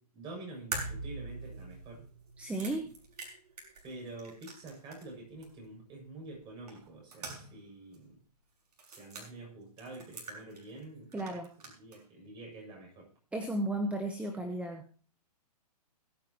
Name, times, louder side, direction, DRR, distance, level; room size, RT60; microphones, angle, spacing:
voice 1, 0.1-2.0 3.8-8.2 8.9-11.4 11.8-13.1, right 2 dB, 25° right, 1 dB, 7.3 m, -47 dB
sound 1, 0.7-5.2 5.4-5.5 6.7-7.7 7.9-8.0 8.7-9.3 9.8-10.9 11.1-12.0, right 3 dB, 75° right, 6.1 m, -43 dB
voice 2, 2.4-2.8 11.1-11.5 13.3-14.9, right 1 dB, 5° right, 5 dB, 1.2 m, -34 dB
21.5 x 10.0 x 3.0 m, 0.41 s
hypercardioid pair, 140°, 20 cm